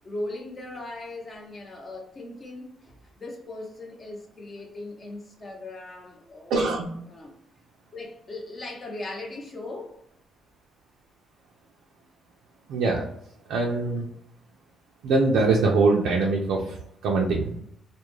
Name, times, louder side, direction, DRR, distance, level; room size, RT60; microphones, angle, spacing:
voice 1, 0.0-6.7 7.1-7.4 7.9-10.0, left 2 dB, 35° left, 0.7 m, -38 dB
voice 2, 6.5-7.0 12.7-13.1 13.5-14.1 15.0-17.6, right 3 dB, 90° right, 0.4 m, -23 dB
2.3 x 2.1 x 3.0 m
cardioid pair, 100°, 0 cm